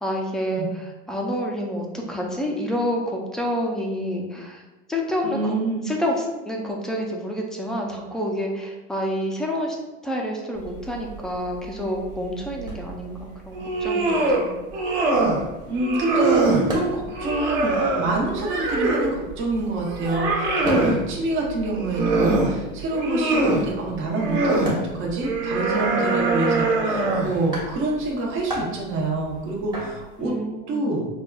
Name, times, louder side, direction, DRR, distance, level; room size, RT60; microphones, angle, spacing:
voice 1, 0.0-4.6 4.9-5.6 5.8-9.8 10.0-14.6 30.2-30.9, equal, ahead, 0 dB, 0.4 m, -28 dB
voice 2, 5.2-5.9 15.7-30.3 30.7-31.1, right 2 dB, 45° right, -2 dB, 0.8 m, -26 dB
sound 1, 10.5-30.3, right 2 dB, 15° right, 1.0 m, -37 dB
sound 2, 13.5-14.4 14.7-15.4 15.8-16.6 17.1-19.1 19.6-21.0 21.6-22.5 22.9-23.6 24.1-24.7 25.2-27.4, right 2 dB, 70° right, 1.2 m, -23 dB
5.1 x 2.3 x 2.3 m, 1.1 s
supercardioid pair, 125°, 29 cm